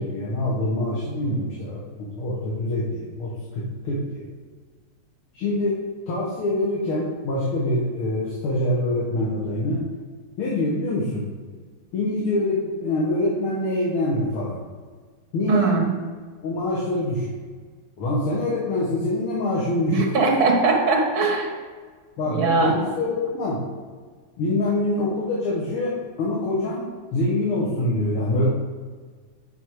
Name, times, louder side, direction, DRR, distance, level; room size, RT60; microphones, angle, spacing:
voice 1, 0.0-4.3 5.3-5.8 6.1-9.8 10.4-11.3 11.9-14.6 15.3-15.8 16.4-17.3 18.0-20.1 22.2-23.6 24.4-26.9 27.1-28.5, left 1 dB, 80° left, -5 dB, 2.2 m, -25 dB
voice 2, 15.5-15.9 19.9-21.5 22.3-22.8, right 3 dB, 70° right, 1 dB, 2.2 m, -20 dB
10.0 x 5.3 x 4.7 m, 1.5 s
omnidirectional pair, 2.3 m